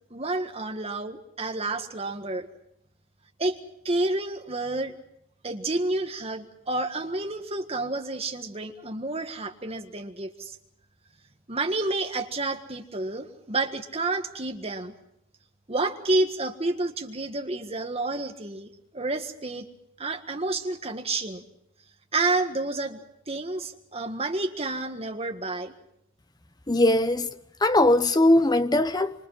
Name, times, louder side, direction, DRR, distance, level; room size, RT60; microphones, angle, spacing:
voice 1, 0.1-2.5 3.4-3.6 3.8-5.0 5.4-10.6 11.5-14.9 15.7-19.6 20.0-21.4 22.1-25.7, right 2 dB, 30° right, 1.7 m, -29 dB
voice 2, 26.7-27.3 27.6-29.1, left 1 dB, 20° left, 0.9 m, -20 dB
25.5 x 25.0 x 5.7 m
head